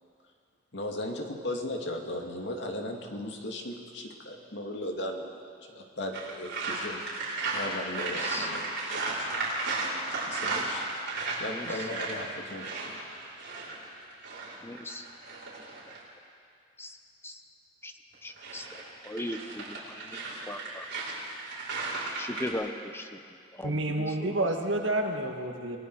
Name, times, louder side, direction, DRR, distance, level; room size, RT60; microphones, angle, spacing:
voice 1, 0.7-5.4 5.7-7.0 7.5-9.6 10.2-10.8 11.4-13.0, left 1 dB, 70° left, 2 dB, 2.4 m, -37 dB
sound 1, 6.1-16.0 18.1-22.5, right 3 dB, 65° right, 5.4 m, -34 dB
voice 2, 8.2-8.5 11.5-11.8 14.6-15.0 15.9-16.0 16.8-17.0 17.2-17.4 17.8-20.9 22.2-24.9, left 1 dB, 15° left, 6 dB, 1.1 m, -39 dB
voice 3, 23.6-25.8, right 1 dB, 85° right, 3 dB, 2.0 m, -29 dB
28.5 x 20.0 x 4.8 m, 2.3 s
head